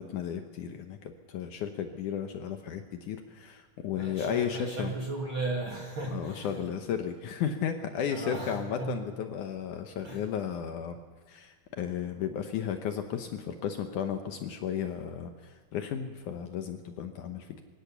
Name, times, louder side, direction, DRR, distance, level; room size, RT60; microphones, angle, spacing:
voice 1, 0.0-4.9 6.1-11.0 11.3-17.6, left 8 dB, 70° left, 6 dB, 2.1 m, -34 dB
voice 2, 3.9-6.6 8.1-9.0 10.0-10.2, right 2 dB, 50° right, 1 dB, 1.7 m, -36 dB
23.5 x 17.0 x 7.0 m, 1.5 s
omnidirectional pair, 4.4 m